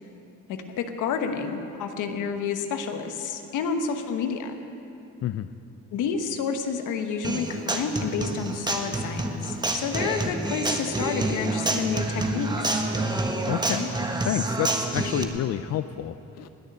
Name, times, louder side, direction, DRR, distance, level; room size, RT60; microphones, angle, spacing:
voice 1, 0.5-4.6 5.9-12.8, left 5 dB, 85° left, 6 dB, 1.2 m, -29 dB
Human voice / Acoustic guitar, 7.2-15.2, right 2 dB, 15° right, 1.3 m, -28 dB
voice 2, 13.5-13.9 14.3-16.5, left 11 dB, 55° left, 12 dB, 0.5 m, -29 dB
20.0 x 6.7 x 9.0 m, 2.9 s
cardioid pair, 90°, 30 cm